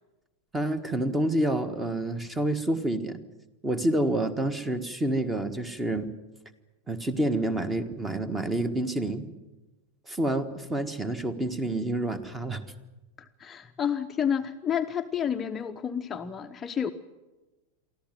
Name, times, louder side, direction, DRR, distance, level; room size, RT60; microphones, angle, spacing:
voice 1, 0.5-3.2 3.6-6.1 6.9-9.3 10.1-12.6, right 1 dB, 10° right, 12 dB, 1.5 m, -28 dB
voice 2, 13.2-16.9, left 8 dB, 20° left, 7 dB, 0.7 m, -30 dB
24.0 x 14.5 x 9.3 m, 1.1 s
figure-of-eight pair, 90°, 0 cm